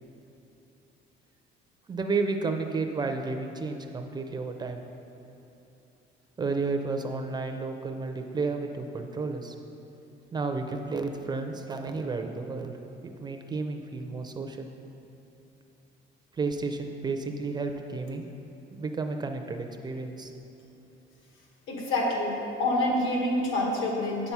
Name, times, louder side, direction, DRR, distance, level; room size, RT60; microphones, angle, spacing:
voice 1, 1.9-4.8 6.4-9.5 10.3-12.7 13.0-14.7 16.3-18.3 18.7-20.3, right 3 dB, 20° right, 5 dB, 0.4 m, -32 dB
voice 2, 21.7-24.3, left 1 dB, 80° left, -1 dB, 1.8 m, -27 dB
8.5 x 5.9 x 5.5 m, 3.0 s
cardioid pair, 155°, 20 cm